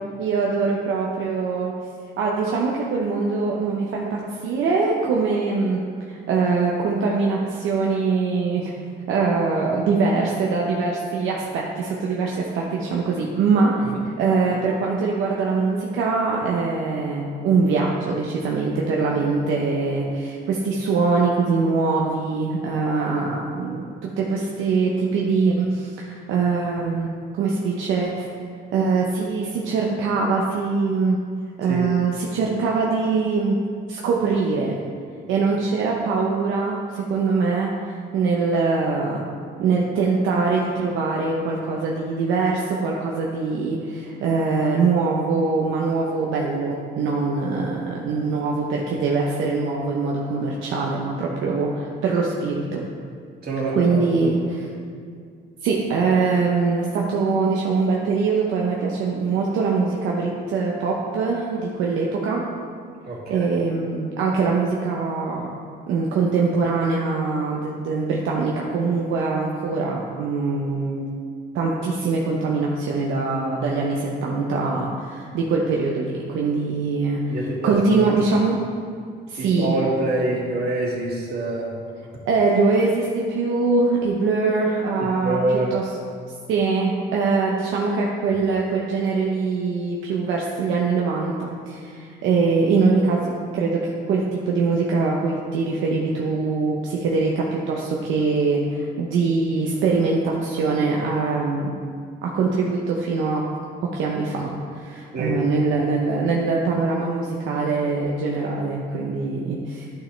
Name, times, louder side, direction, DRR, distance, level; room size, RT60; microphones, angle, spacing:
voice 1, 0.2-1.7 2.2-5.8 6.1-8.7 9.1-13.9 14.2-23.8 24.2-27.1 27.4-28.3 28.7-31.2 31.6-33.6 33.9-34.8 35.3-37.7 38.1-39.2 39.6-52.8 53.7-54.6 55.6-62.4 63.3-65.5 65.9-71.0 71.5-78.6 79.3-79.7 82.3-85.9 86.5-101.7 102.2-103.4 103.9-109.9, right 4 dB, 90° right, -2 dB, 0.8 m, -23 dB
voice 2, 53.4-54.3 63.1-63.5 77.3-78.1 79.4-81.7 85.2-85.7 105.1-105.4, right 2 dB, 55° right, -4 dB, 2.2 m, -26 dB
11.0 x 6.0 x 3.3 m, 2.2 s
cardioid pair, 90°, 20 cm